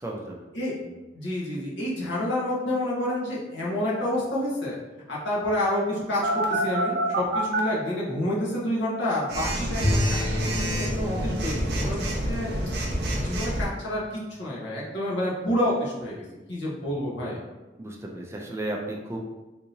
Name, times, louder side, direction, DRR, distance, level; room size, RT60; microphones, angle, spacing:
voice 1, 0.0-0.5 0.8-1.0 17.8-19.2, right 1 dB, 15° right, 0 dB, 0.4 m, -34 dB
voice 2, 1.1-4.8 5.1-10.2 10.5-12.5 13.2-16.2 16.5-17.4, left 1 dB, 85° left, -6 dB, 1.1 m, -28 dB
Telephone, 6.2-7.6 9.3-13.7, right 1 dB, 65° right, 0.6 m, -28 dB
Bowed string instrument, 9.8-14.0, left 1 dB, 25° left, 1.4 m, -31 dB
3.6 x 2.8 x 2.7 m, 1.1 s
head